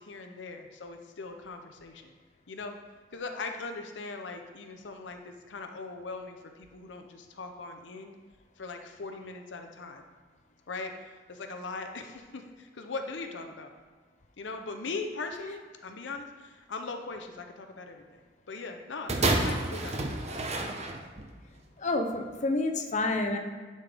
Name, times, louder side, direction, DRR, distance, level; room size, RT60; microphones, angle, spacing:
voice 1, 0.0-2.1 2.5-2.8 3.1-8.1 8.6-10.0 10.7-13.7 14.4-20.1, left 3 dB, 80° left, 5 dB, 0.7 m, -40 dB
sound 1, 19.1-21.3 22.1-22.2, right 2 dB, 35° right, 0.8 m, -29 dB
voice 2, 21.8-23.4, left 2 dB, 40° left, 3 dB, 0.7 m, -28 dB
10.5 x 5.4 x 3.5 m, 1.5 s
head